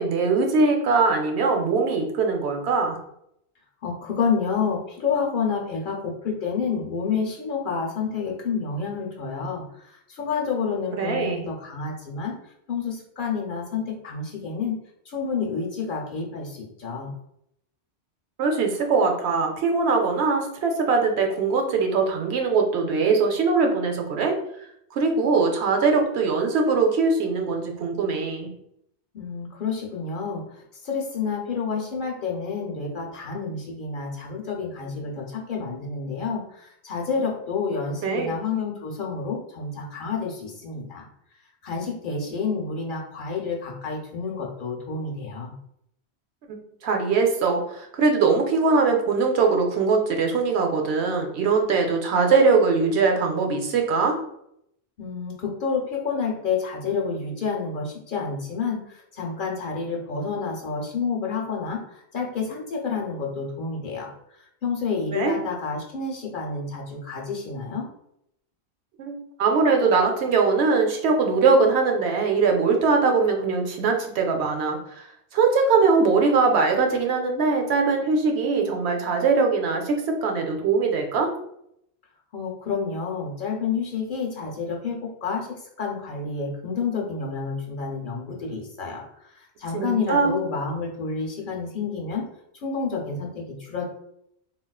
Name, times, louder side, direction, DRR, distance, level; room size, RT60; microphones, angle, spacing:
voice 1, 0.0-3.0 11.0-11.4 18.4-24.3 24.9-28.5 38.0-38.3 46.8-54.2 65.1-65.4 69.0-75.1 75.3-81.3 89.7-90.3, right 4 dB, 75° right, 3 dB, 0.8 m, -21 dB
voice 2, 3.8-12.3 12.7-14.8 15.1-17.1 29.1-41.1 41.6-45.5 55.0-64.1 64.6-67.9 82.3-92.2 92.6-93.9, left 5 dB, 55° left, 0 dB, 0.7 m, -29 dB
3.7 x 2.3 x 2.3 m, 0.75 s
omnidirectional pair, 1.1 m